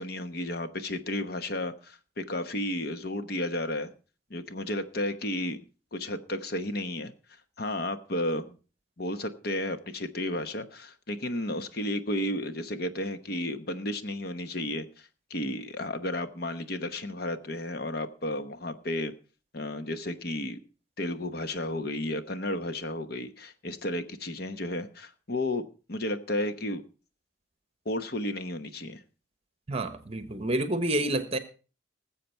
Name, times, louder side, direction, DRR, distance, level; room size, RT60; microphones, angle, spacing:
voice 1, 0.0-3.9 4.3-5.6 5.9-7.1 7.6-8.5 9.0-19.1 19.5-20.6 21.0-25.6 25.9-26.8 27.8-29.0, left 1 dB, 50° left, 1.0 m, -33 dB
voice 2, 29.7-31.4, right 1 dB, 30° right, 1.1 m, -28 dB
19.5 x 7.6 x 4.4 m
head